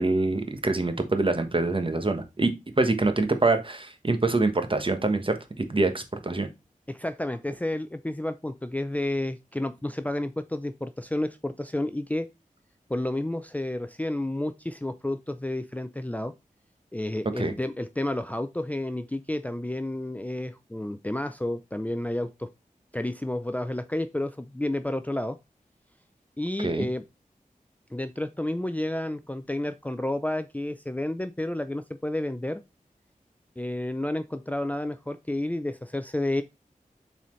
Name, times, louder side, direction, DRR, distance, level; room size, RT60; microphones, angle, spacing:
voice 1, 0.0-2.5 2.8-6.5 17.4-17.5 26.6-26.9, right 2 dB, 40° right, 1.2 m, -25 dB
voice 2, 6.9-12.3 12.9-16.3 16.9-22.5 22.9-25.4 26.4-27.0 27.9-32.6 33.6-36.4, left 1 dB, 10° left, 0.5 m, -30 dB
7.1 x 4.2 x 3.1 m
wide cardioid pair, 55°, 14 cm